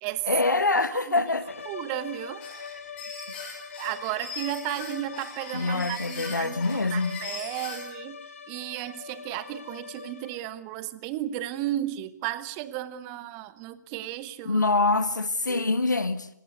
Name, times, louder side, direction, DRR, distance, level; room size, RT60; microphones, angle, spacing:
voice 1, 0.3-1.7 5.5-7.2 14.4-16.3, left 3 dB, 75° left, 1.6 m, -25 dB
sound 1, 1.4-10.6, left 5 dB, 45° left, 2.9 m, -42 dB
voice 2, 1.7-2.5 3.8-14.6 15.5-15.7, right 14 dB, 15° right, 0.9 m, -34 dB
sound 2, 2.4-7.9, left 4 dB, 15° left, 7.0 m, -40 dB
27.0 x 18.5 x 8.2 m
figure-of-eight pair, 150°, 10 cm